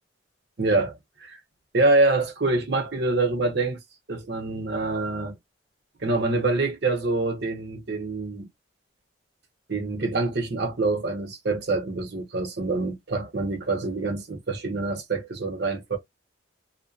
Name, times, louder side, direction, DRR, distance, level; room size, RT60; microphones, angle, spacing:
voice 1, 0.6-0.9 1.7-3.8 4.1-5.4 6.0-8.5 9.7-16.0, right 2 dB, 55° right, 0.8 m, -25 dB
2.5 x 2.1 x 2.4 m
head